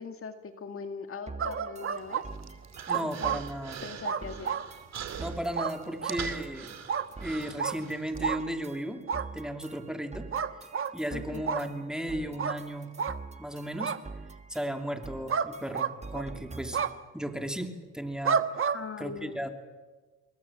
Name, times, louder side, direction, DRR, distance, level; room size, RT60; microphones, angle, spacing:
voice 1, 0.0-2.2 2.9-3.4 3.8-4.6 11.1-11.5 18.7-19.4, left 5 dB, 45° left, 7 dB, 2.1 m, -40 dB
sound 1, 1.3-17.0, right 4 dB, 20° right, 1.6 m, -46 dB
sound 2, 1.4-2.2 2.9-3.4 4.0-4.7 5.5-5.7 6.0-6.2 6.9-7.1 7.6-7.7 8.2-8.4 9.1-9.3 10.3-10.9 11.5-11.6 12.4-12.6 13.0-13.2 13.8-14.0 15.3-15.5 15.7-16.3 16.7-16.9 18.2-18.8, right 7 dB, 45° right, 1.3 m, -29 dB
Human voice, 1.9-8.2, right 8 dB, 60° right, 2.6 m, -44 dB
voice 2, 2.9-3.8 5.2-6.7 7.2-9.0 9.3-10.3 10.9-12.9 13.4-13.9 14.5-16.8 17.1-18.7 19.0-19.5, right 1 dB, ahead, 5 dB, 2.9 m, -35 dB
28.5 x 22.5 x 7.4 m, 1.3 s
cardioid pair, 90°, 30 cm